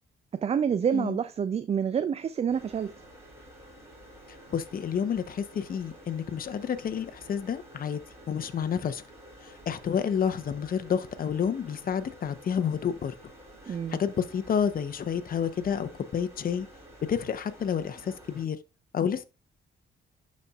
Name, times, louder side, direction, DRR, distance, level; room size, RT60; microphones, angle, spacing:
voice 1, 0.3-2.9 13.7-14.0, right 7 dB, 30° right, 0.4 m, -28 dB
sound 1, 2.5-18.4, equal, 15° right, 3.3 m, -51 dB
voice 2, 4.5-8.0 8.3-9.0 9.4-13.1 13.7-16.7 17.1-18.6 18.9-19.2, left 7 dB, 45° left, 0.8 m, -29 dB
11.5 x 4.2 x 2.4 m
cardioid pair, 90°, 20 cm